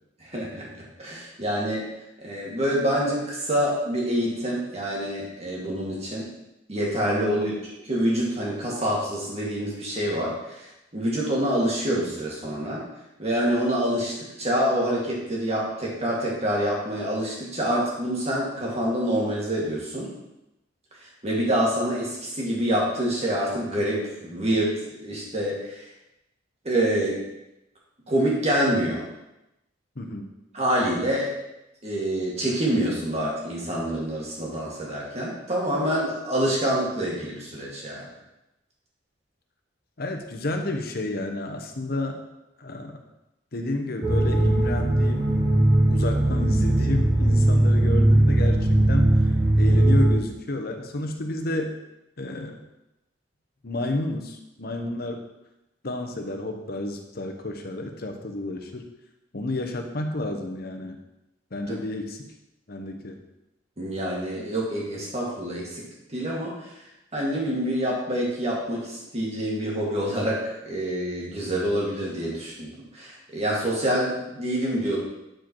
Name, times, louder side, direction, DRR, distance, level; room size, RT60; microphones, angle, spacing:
voice 1, 0.2-0.7 1.0-1.8 2.2-6.3 6.7-7.5 7.8-10.6 10.9-12.8 13.2-20.1 21.2-25.8 26.6-27.2 28.1-29.0 30.5-31.3 31.8-38.1 61.7-61.8 63.8-65.8 66.1-66.5 67.1-70.4 70.7-75.0, equal, 35° right, -4 dB, 2.3 m, -26 dB
voice 2, 7.3-7.6 30.0-30.3 40.0-42.2 42.6-43.0 43.5-45.3 45.9-49.1 49.6-51.8 52.2-52.6 53.6-55.2 55.8-58.8 59.3-61.0 61.5-62.3 62.7-63.2, left 2 dB, 55° left, 4 dB, 1.0 m, -31 dB
sound 1, 44.0-50.1, right 1 dB, 20° right, 1.6 m, -19 dB
9.0 x 5.0 x 4.6 m, 0.92 s
head